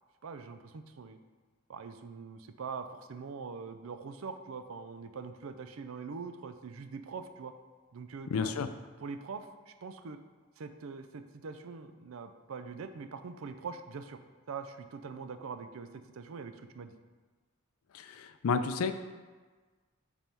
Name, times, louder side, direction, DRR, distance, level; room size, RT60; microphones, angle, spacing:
voice 1, 0.2-1.2 1.7-7.5 7.9-8.7 9.0-10.2 10.6-14.2 14.5-15.9 16.1-16.9, right 5 dB, 75° right, 9 dB, 0.4 m, -43 dB
voice 2, 8.3-8.7 17.9-18.9, left 5 dB, 85° left, 10 dB, 0.4 m, -31 dB
5.4 x 4.3 x 4.4 m, 1.4 s
head